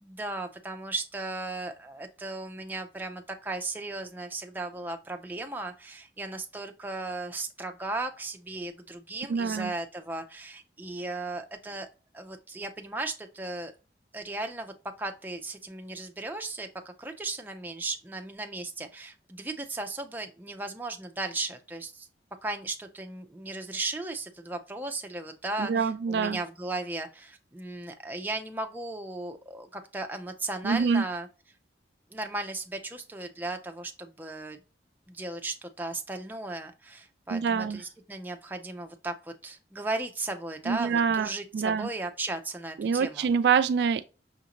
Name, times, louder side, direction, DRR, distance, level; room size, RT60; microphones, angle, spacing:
voice 1, 0.0-11.9 12.1-13.7 14.1-22.1 22.4-31.3 32.1-34.6 35.1-43.3, right 2 dB, 10° right, 0.5 m, -36 dB
voice 2, 9.3-9.7 25.6-26.4 30.6-31.0 37.3-37.8 40.7-41.3 41.5-41.9 42.8-44.0, right 6 dB, 70° right, 0.3 m, -25 dB
5.7 x 2.6 x 2.9 m
head